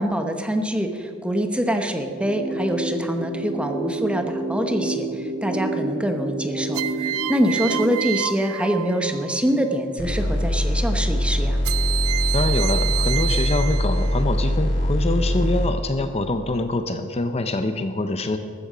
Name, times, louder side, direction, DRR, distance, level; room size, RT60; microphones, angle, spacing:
voice 1, 0.0-11.6, equal, 5° right, 6 dB, 0.9 m, -25 dB
sound 1, 2.1-8.1, right 2 dB, 30° right, 1.3 m, -29 dB
sound 2, 3.6-4.2 6.7-9.4 11.6-14.2, right 14 dB, 80° right, 0.4 m, -29 dB
sound 3, 10.0-15.7, equal, 55° left, 3.1 m, -22 dB
voice 2, 12.3-18.4, left 2 dB, 30° left, 8 dB, 0.6 m, -25 dB
14.0 x 13.5 x 5.0 m, 2.4 s
head